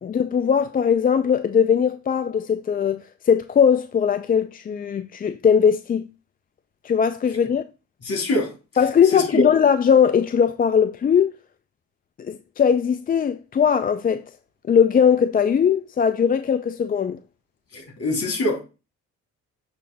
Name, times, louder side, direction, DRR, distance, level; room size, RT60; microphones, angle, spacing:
voice 1, 0.0-6.1 6.8-7.6 8.8-11.3 12.2-14.2 14.7-17.2, left 7 dB, 30° left, 0.4 m, -19 dB
voice 2, 8.0-8.5 9.1-9.4 17.7-18.6, left 1 dB, 55° left, 3.2 m, -24 dB
7.1 x 6.3 x 2.2 m
cardioid pair, 90°, 30 cm